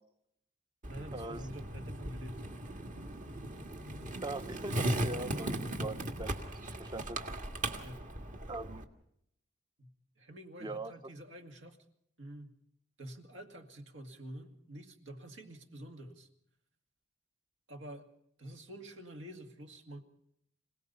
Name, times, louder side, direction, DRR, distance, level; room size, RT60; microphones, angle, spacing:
Skateboard, 0.8-8.8, right 1 dB, 45° right, 1.7 m, -38 dB
voice 1, 0.9-2.4 7.8-8.1 9.8-11.8 12.2-12.6 13.0-16.3 17.7-18.1 18.4-20.0, right 1 dB, 80° right, 5 dB, 2.2 m, -48 dB
voice 2, 4.2-6.3 6.8-7.2 8.5-8.9 10.6-10.9, right 2 dB, 25° right, 13 dB, 0.7 m, -41 dB
26.0 x 18.0 x 5.6 m, 0.74 s
head